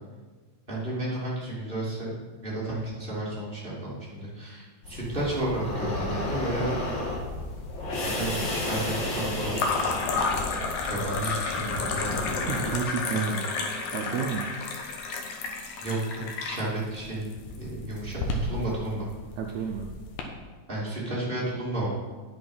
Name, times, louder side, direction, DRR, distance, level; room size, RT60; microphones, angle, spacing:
voice 1, 0.7-2.1 2.4-6.8 7.9-9.7 10.9-12.2 13.1-13.4 13.8-14.0 15.8-17.3 17.6-19.1 20.7-21.9, right 1 dB, 20° right, -6 dB, 2.6 m, -32 dB
sound 1, 4.8-12.7, left 2 dB, 45° left, 2.2 m, -32 dB
sound 2, 6.4-7.2 7.4-8.1 9.5-20.2, left 4 dB, 85° left, 2.5 m, -32 dB
voice 2, 12.5-13.6 13.9-14.6 19.4-20.0, right 6 dB, 75° right, 2 dB, 2.0 m, -31 dB
9.9 x 6.7 x 5.5 m, 1.4 s
omnidirectional pair, 3.3 m